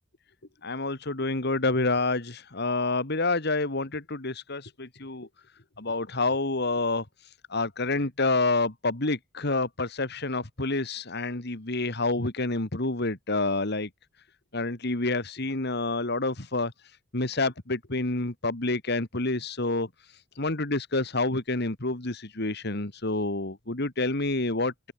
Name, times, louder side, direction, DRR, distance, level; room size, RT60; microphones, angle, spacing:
voice 1, 0.6-5.3 5.8-7.0 7.5-13.9 14.5-16.7 17.1-19.9 20.4-24.9, left 2 dB, 60° left, 2.5 m, -28 dB
open air
head